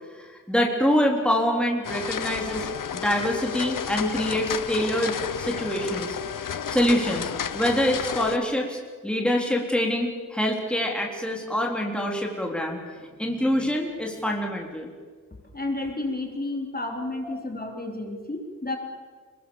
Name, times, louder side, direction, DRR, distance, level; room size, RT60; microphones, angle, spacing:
voice 1, 0.5-6.2 6.7-12.8 13.2-14.9 17.2-17.3, equal, 5° left, 0 dB, 3.8 m, -25 dB
sound 1, 1.8-8.4, left 7 dB, 85° left, 1.0 m, -31 dB
voice 2, 15.5-18.8, left 2 dB, 30° left, 2 dB, 3.9 m, -31 dB
29.5 x 21.0 x 7.2 m, 1.5 s
wide cardioid pair, 90°, 31 cm